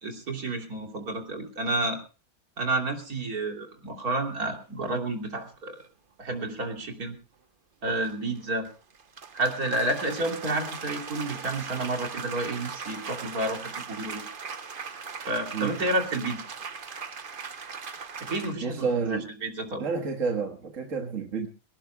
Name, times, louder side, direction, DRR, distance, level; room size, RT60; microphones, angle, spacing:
voice 1, 0.0-2.0 2.6-5.8 6.2-7.2 7.8-8.7 9.3-14.3 15.2-16.4 18.2-19.9, right 2 dB, 75° right, 3 dB, 3.6 m, -30 dB
sound 1, 5.0-5.1 8.0-18.5, right 5 dB, 40° right, 1.1 m, -39 dB
voice 2, 18.6-19.3 19.8-21.5, right 5 dB, 55° right, 3 dB, 2.0 m, -29 dB
23.5 x 18.0 x 2.3 m, 0.34 s
omnidirectional pair, 1.6 m